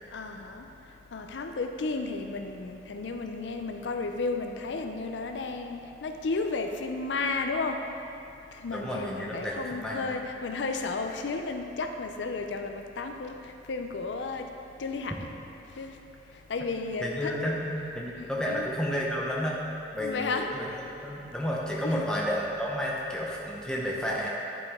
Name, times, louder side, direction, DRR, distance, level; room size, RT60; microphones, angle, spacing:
voice 1, 0.1-0.6 1.1-7.8 8.6-13.3 13.7-14.4 14.8-15.1 15.8-15.9 16.5-17.3 18.2-18.7 20.0-20.5 21.8-22.0, left 3 dB, 80° left, 5 dB, 0.5 m, -33 dB
voice 2, 8.7-10.2 17.0-19.6 19.9-20.7 21.0-24.3, equal, 5° left, -4 dB, 0.7 m, -31 dB
10.0 x 4.9 x 3.6 m, 2.7 s
head